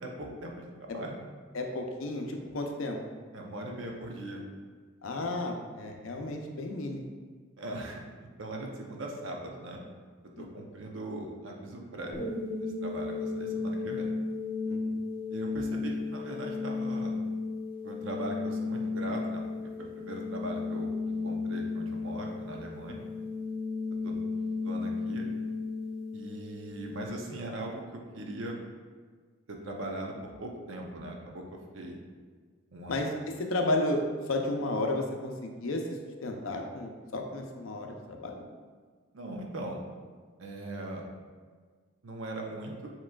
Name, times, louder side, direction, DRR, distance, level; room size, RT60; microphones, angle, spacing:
voice 1, 0.0-1.2 3.3-4.4 7.6-9.8 10.4-12.2 12.6-14.1 15.3-17.1 17.8-19.4 19.8-22.9 24.0-24.1 24.6-25.3 26.1-28.6 29.5-31.4 31.7-32.0 32.7-33.0 39.1-39.8 40.4-41.1 42.0-42.9, right 1 dB, 70° right, 0 dB, 0.7 m, -40 dB
voice 2, 1.5-3.0 5.0-7.0 10.4-10.6 14.7-14.8 32.9-38.4, left 2 dB, 75° left, 3 dB, 0.6 m, -33 dB
sound 1, 12.1-27.1, left 4 dB, 10° left, 0.7 m, -34 dB
7.4 x 3.0 x 2.3 m, 1.5 s
head